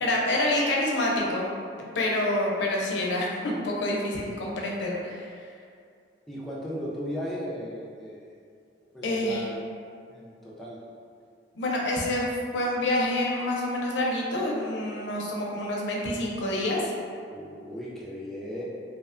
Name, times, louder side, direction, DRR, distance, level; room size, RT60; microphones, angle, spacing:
voice 1, 0.0-1.5 1.8-5.4 9.0-9.4 11.6-16.8, left 1 dB, 85° left, -2 dB, 0.4 m, -27 dB
voice 2, 6.3-8.2 8.9-9.6 10.1-10.8 17.3-18.6, equal, ahead, -7 dB, 0.3 m, -36 dB
2.7 x 2.1 x 2.4 m, 2.3 s
head